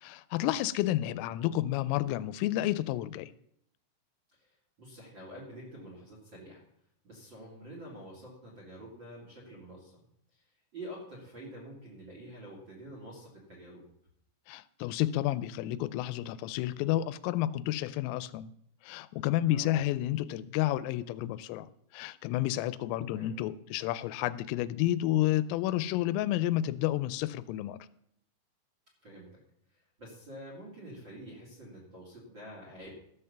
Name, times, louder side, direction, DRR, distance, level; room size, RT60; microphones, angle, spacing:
voice 1, 0.0-3.3 14.5-18.5 18.8-21.7 21.9-27.9, left 14 dB, 90° left, 15 dB, 3.2 m, -30 dB
voice 2, 4.8-6.6 7.0-10.0 10.3-10.4 10.7-13.8 19.5-19.7 22.9-23.4 29.0-29.4 29.7-32.9, right 1 dB, 35° right, -3 dB, 2.1 m, -47 dB
13.5 x 5.7 x 6.7 m, 0.71 s
omnidirectional pair, 5.8 m